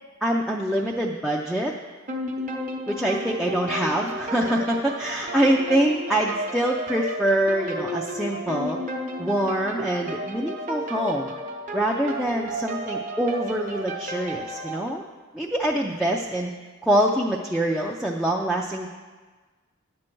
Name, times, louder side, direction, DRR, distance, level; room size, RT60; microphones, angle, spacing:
voice 1, 0.2-1.7 2.9-8.8 9.2-11.3 11.7-15.0 15.3-16.5 16.8-18.9, right 1 dB, ahead, -3 dB, 0.4 m, -25 dB
sound 1, 2.1-14.9, equal, 35° right, 0.9 m, -33 dB
10.5 x 7.5 x 4.5 m, 1.4 s
head